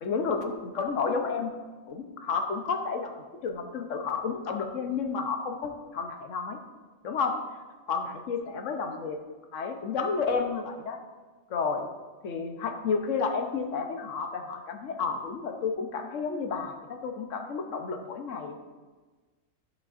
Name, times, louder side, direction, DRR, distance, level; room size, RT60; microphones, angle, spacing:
voice 1, 0.0-1.5 1.9-3.1 3.4-6.6 7.0-7.4 7.9-9.2 9.5-11.0 11.5-11.9 12.2-18.6, left 5 dB, 75° left, 5 dB, 1.2 m, -31 dB
10.0 x 7.3 x 2.5 m, 1.3 s
omnidirectional pair, 1.3 m